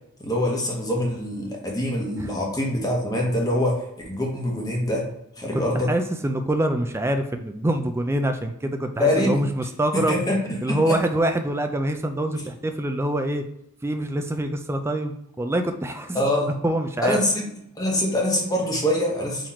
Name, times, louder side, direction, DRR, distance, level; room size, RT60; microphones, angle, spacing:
voice 1, 0.2-5.1 5.4-5.9 9.0-9.4 9.9-11.0 16.1-16.5 17.0-17.5 17.8-19.5, left 1 dB, 15° left, -1 dB, 1.0 m, -24 dB
voice 2, 5.9-10.2 10.6-13.4 13.8-16.2 16.6-17.2, right 1 dB, 10° right, 6 dB, 0.3 m, -25 dB
3.9 x 3.0 x 4.3 m, 0.79 s
head